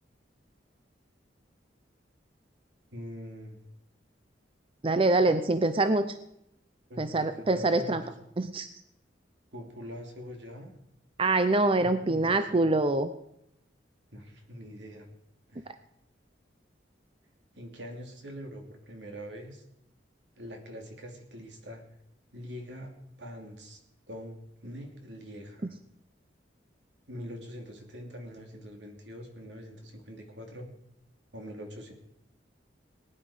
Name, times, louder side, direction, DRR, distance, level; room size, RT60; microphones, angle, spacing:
voice 1, 2.9-3.6 6.9-8.0 9.5-10.7 11.8-12.7 14.1-15.1 15.5-15.7 17.5-19.6 20.4-21.8 22.3-23.8 24.1-25.7 27.1-30.7 31.3-31.9, equal, 75° right, 3 dB, 2.8 m, -43 dB
voice 2, 4.8-6.2 7.0-8.0 8.4-8.7 11.2-13.1, right 2 dB, 30° right, 10 dB, 0.6 m, -25 dB
19.5 x 10.0 x 5.0 m, 0.81 s
head